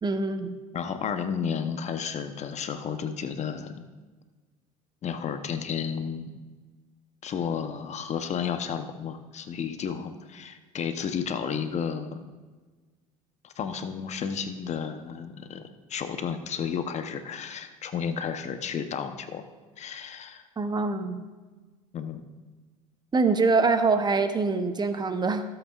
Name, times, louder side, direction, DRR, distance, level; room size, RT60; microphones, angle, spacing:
voice 1, 0.0-0.6 20.6-21.3 23.1-25.4, right 4 dB, 25° right, 8 dB, 0.8 m, -24 dB
voice 2, 0.7-3.8 5.0-6.3 7.2-12.2 13.4-15.6 15.9-19.4 19.8-20.4 21.9-22.2, left 7 dB, 40° left, 8 dB, 0.9 m, -32 dB
16.0 x 8.0 x 2.4 m, 1.3 s
hypercardioid pair, 70°, 18 cm